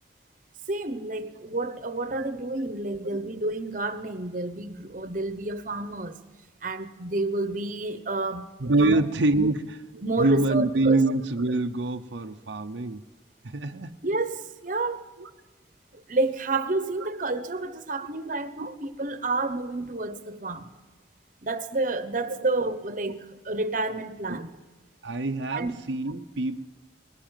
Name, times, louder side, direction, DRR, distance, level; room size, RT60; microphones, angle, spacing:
voice 1, 0.7-6.2 6.6-8.5 8.8-9.0 9.4-9.5 10.0-11.0 14.0-15.0 16.1-20.8 21.4-24.5 25.5-25.8, right 2 dB, 45° right, 1.1 m, -29 dB
voice 2, 8.6-13.0 13.4-14.0 15.2-15.3 17.0-17.1 22.3-22.5 24.3-24.4 25.0-26.7, right 2 dB, 75° right, 0.8 m, -25 dB
20.5 x 17.0 x 9.1 m
head